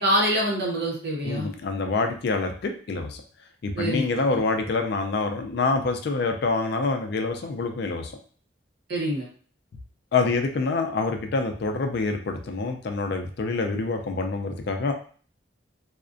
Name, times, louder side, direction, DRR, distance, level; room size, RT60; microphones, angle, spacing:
voice 1, 0.0-1.5 3.7-4.4 8.9-9.3, equal, 55° right, -2 dB, 0.8 m, -25 dB
voice 2, 1.2-3.2 3.6-8.1 10.1-14.9, left 3 dB, 55° left, 5 dB, 0.3 m, -26 dB
2.4 x 2.1 x 2.4 m, 0.44 s
head